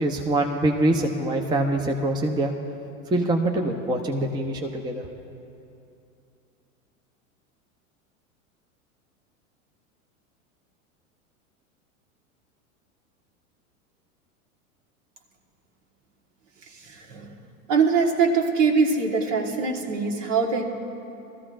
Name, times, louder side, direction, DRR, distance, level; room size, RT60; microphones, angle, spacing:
voice 1, 0.0-2.5 3.1-5.1, right 1 dB, 10° right, 3 dB, 0.7 m, -24 dB
voice 2, 16.9-17.3 17.7-20.6, right 5 dB, 60° right, 2 dB, 1.6 m, -22 dB
19.5 x 14.0 x 2.5 m, 2.7 s
hypercardioid pair, 95°, 42 cm